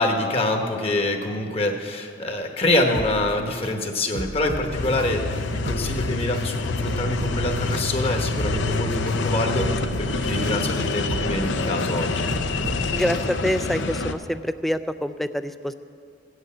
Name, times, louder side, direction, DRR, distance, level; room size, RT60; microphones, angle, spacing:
voice 1, 0.0-12.2, left 1 dB, 30° left, 4 dB, 1.2 m, -25 dB
sound 1, 2.9-3.7 4.2-5.1 5.5-6.4 6.9-7.8 8.2-9.2 9.6-10.5 11.0-11.9 12.3-13.2 13.7-13.8, right 2 dB, 50° right, 0.6 m, -34 dB
sound 2, 4.7-14.1, left 3 dB, 80° left, 0.7 m, -26 dB
voice 2, 12.9-15.7, equal, ahead, 11 dB, 0.3 m, -26 dB
15.5 x 8.1 x 8.7 m, 2.4 s
head